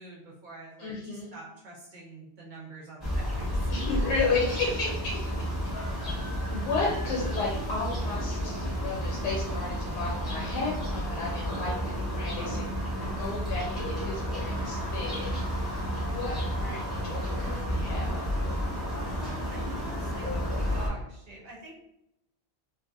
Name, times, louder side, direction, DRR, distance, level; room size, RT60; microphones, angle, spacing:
voice 1, 0.0-3.7 19.0-21.8, right 2 dB, 50° right, -4 dB, 0.7 m, -46 dB
voice 2, 0.8-1.3 3.7-5.1 5.9-12.7 13.2-15.3 15.9-18.3, left 3 dB, 80° left, -3 dB, 0.9 m, -33 dB
sound 1, 3.0-20.9, equal, ahead, 0.8 m, -31 dB
2.6 x 2.5 x 2.5 m, 0.86 s
omnidirectional pair, 1.2 m